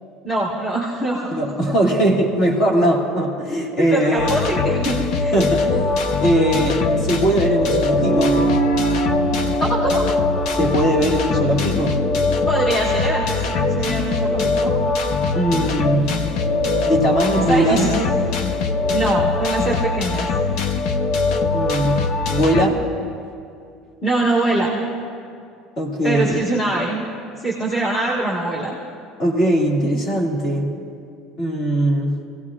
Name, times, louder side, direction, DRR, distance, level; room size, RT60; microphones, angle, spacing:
voice 1, 0.2-1.8 3.8-5.4 9.6-10.0 12.5-14.7 17.5-18.0 18.9-20.3 24.0-24.8 26.0-27.1 27.4-28.8, right 2 dB, 15° left, -5 dB, 1.5 m, -23 dB
voice 2, 1.3-4.3 5.3-5.8 6.2-8.4 10.5-12.0 15.3-16.1 16.8-18.2 21.5-22.0 22.3-22.8 25.8-26.4 29.2-30.7 31.4-32.1, right 1 dB, 35° left, -1 dB, 2.0 m, -20 dB
sound 1, 4.2-22.7, left 3 dB, 55° left, 0.7 m, -21 dB
sound 2, 7.9-12.7, right 3 dB, ahead, 0.6 m, -25 dB
27.0 x 17.0 x 2.5 m, 2.4 s
cardioid pair, 180°, 0 cm